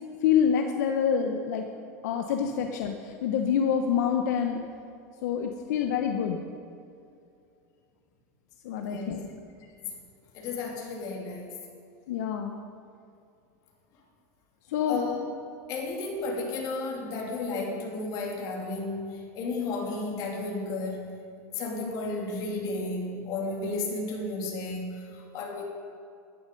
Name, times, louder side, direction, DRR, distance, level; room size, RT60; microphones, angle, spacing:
voice 1, 0.2-1.7 2.0-4.6 5.2-6.4 8.6-9.3 12.1-12.6 14.7-15.0, left 7 dB, 80° left, 4 dB, 1.0 m, -26 dB
voice 2, 8.8-9.2 9.8-9.9 10.3-11.6 14.9-15.2 15.7-21.1 21.5-25.6, left 3 dB, 45° left, -1 dB, 2.9 m, -33 dB
13.5 x 11.0 x 5.3 m, 2.5 s
supercardioid pair, 150°, 9 cm